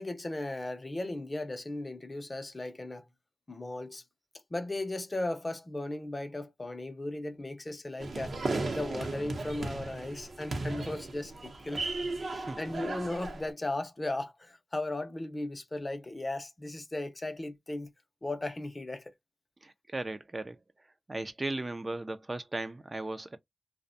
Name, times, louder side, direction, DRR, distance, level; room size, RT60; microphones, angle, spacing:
voice 1, 0.0-3.0 3.5-4.0 4.5-8.4 8.7-11.8 12.3-17.9 18.2-19.0, left 2 dB, 25° left, 0.5 m, -36 dB
sound 1, 8.0-13.5, right 2 dB, 65° right, 0.7 m, -36 dB
voice 2, 12.2-12.6 19.6-20.6 21.1-23.4, right 2 dB, 30° right, 0.3 m, -37 dB
2.5 x 2.1 x 2.5 m
wide cardioid pair, 100°, 0 cm